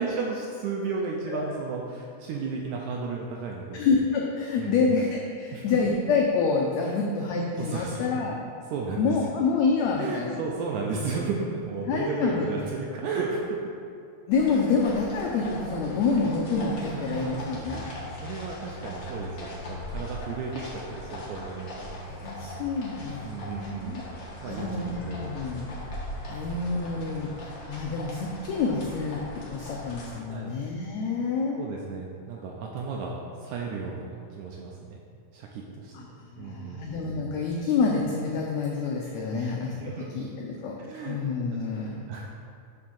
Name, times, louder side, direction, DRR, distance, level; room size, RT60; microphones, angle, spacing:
voice 1, 0.0-3.9 4.6-5.0 5.5-5.7 6.8-6.9 7.6-8.1 8.7-9.1 10.0-13.6 16.9-22.0 23.2-24.0 24.4-24.7 25.0-25.3 26.3-26.6 30.2-30.6 31.5-35.0 35.3-35.9 36.4-36.9 39.3-40.1 40.8-41.2 41.8-42.3, right 4 dB, 80° right, -1 dB, 1.9 m, -34 dB
voice 2, 3.7-8.4 9.0-10.4 11.8-12.5 14.3-17.8 22.1-24.0 24.4-25.7 26.3-31.6 35.9-36.1 36.3-40.8 41.0-42.0, left 4 dB, 80° left, -1 dB, 1.6 m, -27 dB
sound 1, 14.3-30.2, left 1 dB, 50° left, 1.4 m, -39 dB
8.5 x 3.5 x 6.2 m, 2.4 s
omnidirectional pair, 3.7 m